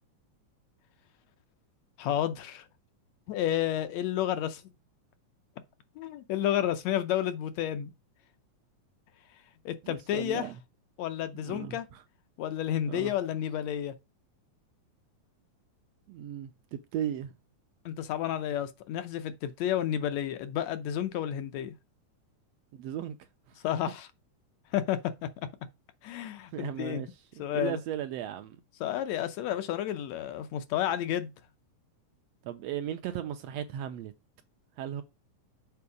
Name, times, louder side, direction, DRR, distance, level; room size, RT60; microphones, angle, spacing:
voice 1, 2.0-2.7 3.3-4.6 6.0-7.9 9.7-10.5 11.0-11.9 12.4-13.9 17.9-21.7 23.6-24.1 24.7-25.0 26.0-27.0 27.4-27.8 28.8-31.3, left 11 dB, 75° left, 1.8 m, -31 dB
voice 2, 9.8-10.5 11.4-12.0 12.9-13.1 16.1-17.3 22.7-23.2 26.5-28.6 32.4-34.1 34.8-35.0, right 10 dB, 75° right, 1.6 m, -36 dB
7.0 x 4.6 x 4.9 m
omnidirectional pair, 3.4 m